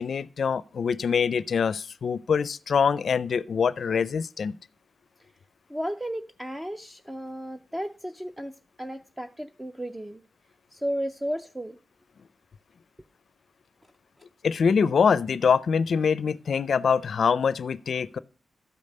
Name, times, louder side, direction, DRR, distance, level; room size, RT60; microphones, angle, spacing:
voice 1, 0.0-4.6 14.4-18.2, left 6 dB, 65° left, 0.4 m, -24 dB
voice 2, 5.7-10.2 10.7-11.8, equal, 10° right, 0.5 m, -34 dB
12.5 x 5.3 x 6.5 m
wide cardioid pair, 130°, 0 cm